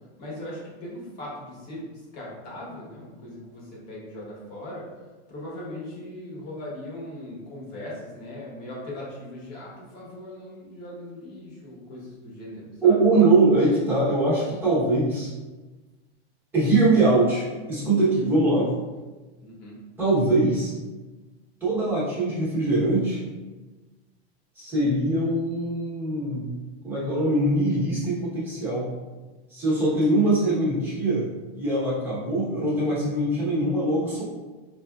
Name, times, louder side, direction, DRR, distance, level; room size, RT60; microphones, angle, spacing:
voice 1, 0.2-1.8 2.1-4.8 5.3-13.0 19.4-19.8 29.8-29.9, left 1 dB, 25° left, -5 dB, 1.0 m, -39 dB
voice 2, 12.8-15.3 16.5-18.7 20.0-20.7 21.6-23.2 24.6-26.5 26.8-28.9 29.5-31.3 31.5-34.2, right 2 dB, 5° right, -9 dB, 0.8 m, -22 dB
4.7 x 2.6 x 2.2 m, 1.2 s
supercardioid pair, 170°, 33 cm